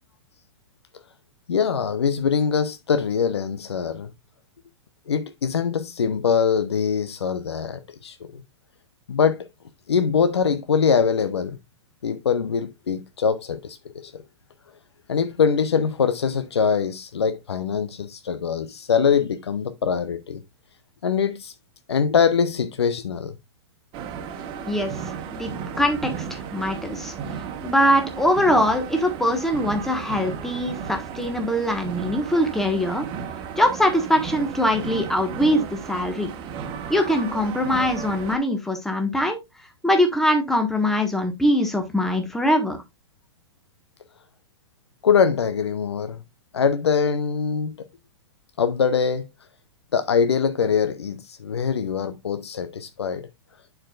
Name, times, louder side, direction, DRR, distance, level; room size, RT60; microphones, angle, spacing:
voice 1, 1.5-4.1 5.1-8.4 9.1-9.5 9.9-11.6 12.0-14.2 15.1-20.4 21.0-21.5 21.9-23.3 45.0-46.2 46.5-47.7 48.6-49.3 49.9-53.3, left 6 dB, 80° left, 0.8 m, -23 dB
sound 1, 23.9-38.4, right 7 dB, 35° right, 1.4 m, -34 dB
voice 2, 25.8-27.1 27.6-33.0 33.5-36.3 36.9-39.4 39.8-42.8, equal, ahead, 1.4 m, -22 dB
11.0 x 4.8 x 2.4 m
hypercardioid pair, 110°, 14 cm